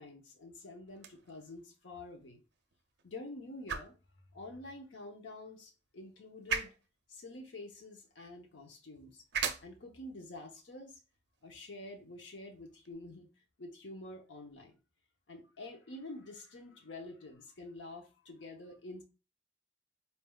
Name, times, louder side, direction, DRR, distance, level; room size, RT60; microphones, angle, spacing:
voice 1, 0.0-2.4 3.0-3.9 4.3-6.7 7.1-9.2 9.6-11.0 11.4-13.3 13.6-14.8 15.3-19.0, left 2 dB, 80° left, 2 dB, 0.8 m, -48 dB
sound 1, 0.9-12.9, right 6 dB, 65° right, 0.6 m, -44 dB
4.2 x 3.5 x 2.3 m, 0.32 s
head